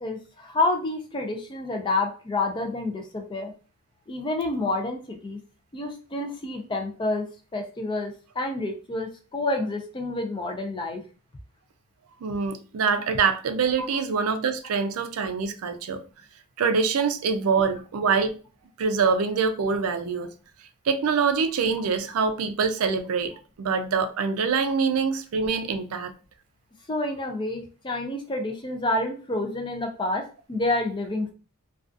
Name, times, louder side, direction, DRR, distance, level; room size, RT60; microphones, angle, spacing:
voice 1, 0.0-3.5 4.1-5.4 5.7-7.3 7.5-11.0 13.8-13.9 21.8-21.9 26.9-31.3, left 2 dB, 20° left, 0.4 m, -28 dB
voice 2, 12.2-16.0 16.6-18.4 18.8-20.3 20.9-26.1, right 5 dB, 75° right, 0.4 m, -25 dB
2.4 x 2.3 x 2.4 m
head